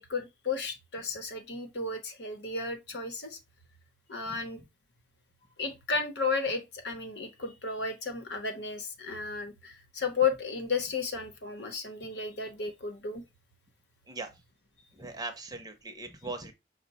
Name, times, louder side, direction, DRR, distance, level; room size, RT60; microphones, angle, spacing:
voice 1, 0.0-3.4 4.1-4.6 5.6-13.2, left 4 dB, 70° left, 0.9 m, -33 dB
voice 2, 15.0-16.5, right 3 dB, 20° right, 0.7 m, -39 dB
5.6 x 2.1 x 4.0 m
head